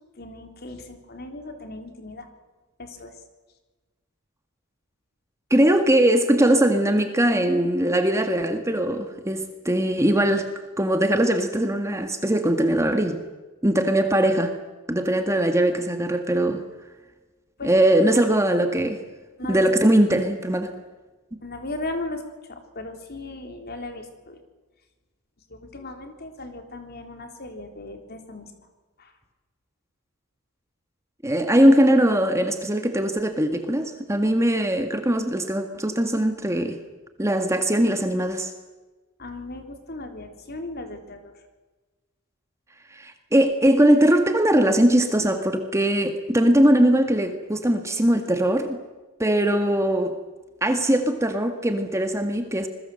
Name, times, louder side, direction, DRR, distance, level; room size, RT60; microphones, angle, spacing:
voice 1, 0.2-2.3 2.8-3.1 17.6-17.8 18.1-18.5 19.4-19.7 21.4-22.2 22.5-24.4 25.5-28.5 29.0-29.1 39.2-41.3, left 2 dB, 45° left, 5 dB, 3.7 m, -37 dB
voice 2, 5.5-10.5 10.8-13.2 13.6-14.5 14.9-16.6 17.6-19.0 19.5-20.7 31.2-36.8 37.2-38.5 42.9-48.8 49.2-50.2 50.6-52.7, right 1 dB, 15° right, 6 dB, 1.8 m, -21 dB
27.0 x 21.5 x 7.8 m, 1.2 s
head